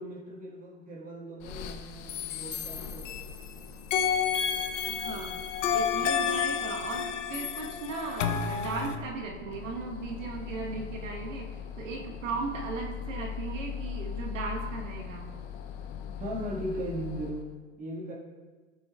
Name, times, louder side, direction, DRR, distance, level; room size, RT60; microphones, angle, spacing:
voice 1, 0.0-3.2 16.2-18.1, equal, 20° right, -4 dB, 1.9 m, -38 dB
sound 1, 1.4-17.5, left 7 dB, 35° left, 0.6 m, -41 dB
sound 2, 2.1-3.5 3.9-9.0, left 7 dB, 65° left, 0.8 m, -30 dB
voice 2, 4.9-5.4 5.7-15.3, right 4 dB, 70° right, 0 dB, 1.4 m, -37 dB
12.5 x 7.4 x 2.4 m, 1.4 s
hypercardioid pair, 125°, 40 cm